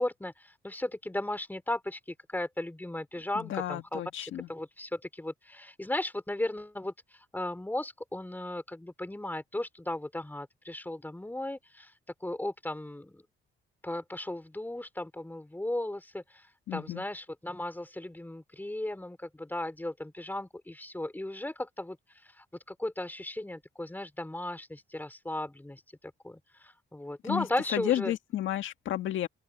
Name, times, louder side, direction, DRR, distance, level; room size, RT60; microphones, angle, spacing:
voice 1, 0.0-2.0 2.3-6.9 7.3-11.9 12.2-13.2 13.8-16.2 16.7-22.0 22.4-25.8 26.2-28.1, left 1 dB, 10° left, 4.2 m, -36 dB
voice 2, 3.3-4.5 16.7-17.0 27.2-27.5 27.7-29.3, left 12 dB, 75° left, 1.9 m, -32 dB
open air
cardioid pair, 90°, 20 cm